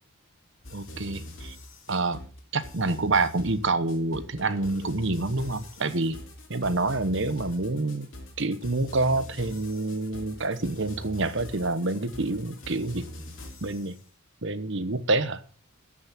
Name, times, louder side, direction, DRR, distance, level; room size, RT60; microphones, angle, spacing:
sound 1, 0.6-13.9, left 1 dB, 60° left, 3.0 m, -43 dB
voice 1, 0.7-1.6 1.9-2.2 2.5-6.2 6.5-8.1 8.4-13.0 13.6-13.9 14.4-15.4, right 2 dB, 55° right, 1.0 m, -27 dB
13.5 x 6.3 x 7.4 m
head